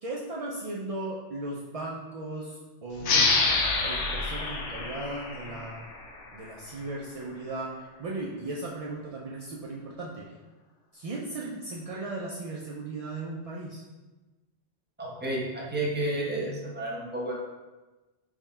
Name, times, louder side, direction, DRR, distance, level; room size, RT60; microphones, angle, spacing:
voice 1, 0.0-3.5 3.8-5.8 6.3-7.7 8.0-10.2 10.9-13.8, right 2 dB, 70° right, -4 dB, 0.3 m, -37 dB
sound 1, 3.0-6.3, left 3 dB, 80° left, 0.9 m, -27 dB
voice 2, 15.0-17.3, right 1 dB, 10° right, -5 dB, 0.6 m, -31 dB
3.6 x 2.3 x 4.1 m, 1.2 s
omnidirectional pair, 1.2 m